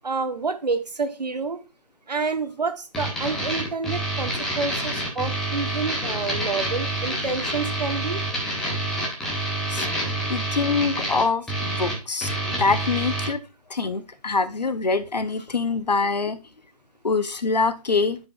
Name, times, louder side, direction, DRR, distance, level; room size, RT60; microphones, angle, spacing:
voice 1, 0.0-1.6 2.1-8.2, right 4 dB, 85° right, 8 dB, 1.1 m, -28 dB
sound 1, 2.9-13.3, right 1 dB, ahead, 0.5 m, -27 dB
voice 2, 10.3-12.3 12.6-13.4 13.7-16.4 17.0-18.2, left 4 dB, 90° left, 12 dB, 0.8 m, -24 dB
10.5 x 4.5 x 2.4 m, 0.29 s
figure-of-eight pair, 155°, 21 cm